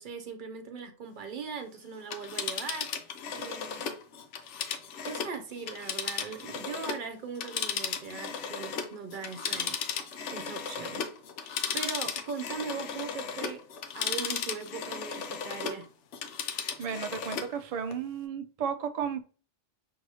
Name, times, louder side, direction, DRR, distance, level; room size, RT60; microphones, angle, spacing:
voice 1, 0.0-3.1 3.3-3.9 5.0-9.8 10.3-11.0 11.4-13.6 13.9-15.9, right 5 dB, 50° right, 0.7 m, -39 dB
Telephone, 2.0-7.1 7.4-15.8 16.1-17.5 17.9-18.0, left 7 dB, 85° left, 0.9 m, -35 dB
voice 2, 16.8-19.3, right 7 dB, 70° right, 0.3 m, -33 dB
6.1 x 2.7 x 2.8 m
omnidirectional pair, 1.2 m